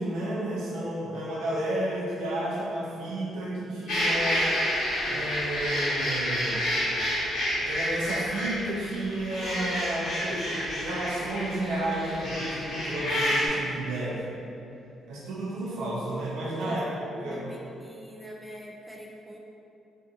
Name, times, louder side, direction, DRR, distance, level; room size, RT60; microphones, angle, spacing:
voice 1, 0.0-4.5 5.1-6.6 7.6-14.2 15.1-17.5, right 1 dB, 85° right, -5 dB, 0.5 m, -32 dB
sound 1, 3.9-13.5, equal, 80° left, 1.0 m, -29 dB
voice 2, 16.6-16.9 17.2-19.4, equal, 5° right, -2 dB, 0.3 m, -44 dB
2.6 x 2.6 x 2.4 m, 2.7 s
cardioid pair, 90°, 0 cm